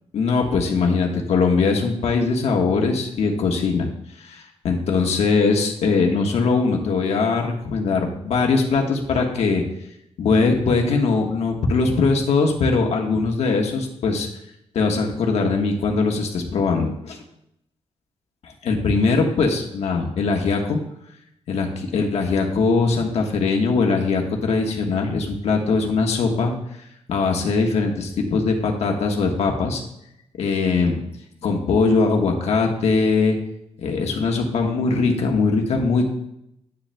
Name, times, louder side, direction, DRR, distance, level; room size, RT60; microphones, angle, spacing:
voice 1, 0.1-3.9 4.2-9.6 10.2-14.3 14.7-17.2 18.4-20.8 21.5-26.5 27.1-29.8 30.4-31.0 31.4-33.4 33.8-36.1, left 4 dB, 70° left, 1 dB, 1.3 m, -21 dB
10.0 x 8.3 x 2.2 m, 0.78 s
wide cardioid pair, 135°, 11 cm